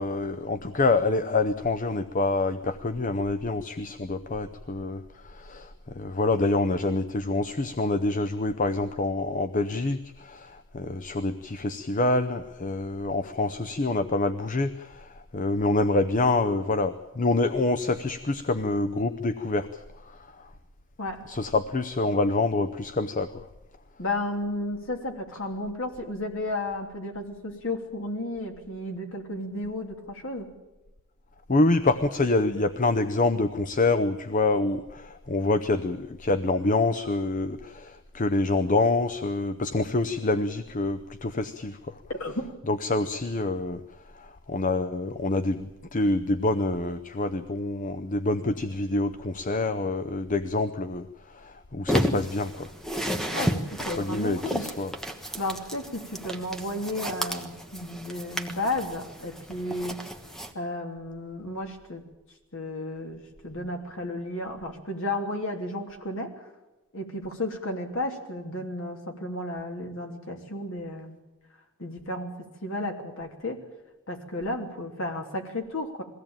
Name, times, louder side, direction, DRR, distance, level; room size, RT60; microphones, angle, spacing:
voice 1, 0.0-19.7 20.1-20.2 21.3-23.4 31.5-42.0 42.7-43.8 44.2-51.1 51.3-52.7 54.0-54.9 55.3-55.4, left 2 dB, 35° left, 10 dB, 0.7 m, -26 dB
voice 2, 24.0-30.5 42.1-42.3 53.3-54.7 55.4-60.1 60.5-62.0 62.5-66.5 66.9-71.2 71.8-73.6 74.1-76.0, left 1 dB, 65° left, 3 dB, 3.1 m, -33 dB
sound 1, 51.9-60.5, equal, ahead, 1.3 m, -32 dB
22.0 x 16.5 x 8.9 m, 1.0 s
head